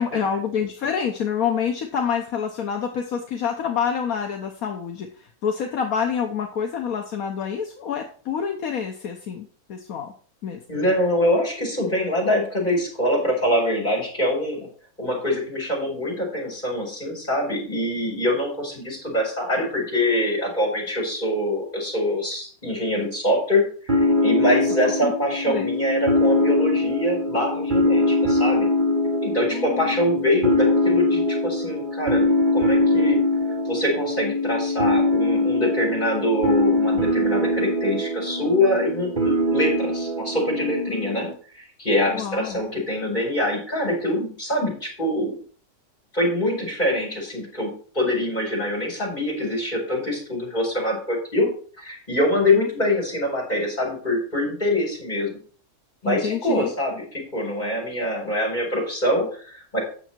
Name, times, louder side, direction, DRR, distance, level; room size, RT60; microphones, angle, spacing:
voice 1, 0.0-10.1 10.4-10.6 24.4-24.6 25.0-25.1 25.5-25.7 29.5-29.8 42.1-42.6 52.6-52.7 56.0-56.7, left 7 dB, 70° left, 3 dB, 1.4 m, -27 dB
voice 2, 10.7-14.7 15.0-28.7 29.2-33.2 33.6-41.3 41.5-45.3 46.1-51.5 51.8-55.3 56.0-59.8, left 1 dB, 30° left, -2 dB, 5.0 m, -24 dB
sound 1, 23.9-41.3, left 1 dB, 35° right, 1.3 m, -22 dB
9.2 x 7.0 x 4.5 m, 0.43 s
omnidirectional pair, 1.6 m